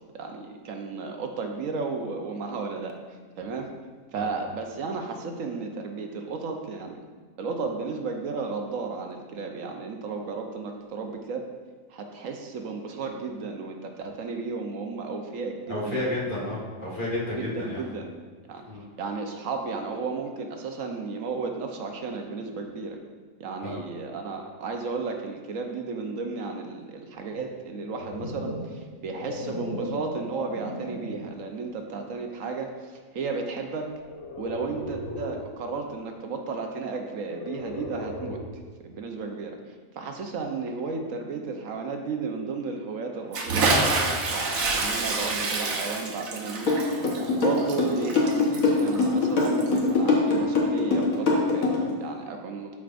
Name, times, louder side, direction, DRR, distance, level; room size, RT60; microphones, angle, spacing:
voice 1, 0.1-3.7 4.1-7.0 7.4-11.5 11.9-16.1 17.4-18.1 18.5-18.6 19.0-23.0 23.4-33.9 34.4-38.4 38.8-43.9 44.3-52.8, right 4 dB, 75° right, 3 dB, 1.1 m, -34 dB
voice 2, 15.7-17.8 18.7-18.8 23.6-23.8, left 1 dB, 40° left, -6 dB, 1.7 m, -31 dB
sound 1, 27.7-31.3 32.0-32.2 34.0-35.5 37.2-38.7, left 1 dB, 60° left, 1.1 m, -36 dB
Bathtub (filling or washing) / Splash splatter, 43.3-49.9, right 3 dB, 90° right, 1.4 m, -28 dB
sound 2, 46.7-51.9, left 3 dB, 85° left, 1.7 m, -22 dB
12.5 x 4.6 x 2.5 m, 1.5 s
omnidirectional pair, 1.4 m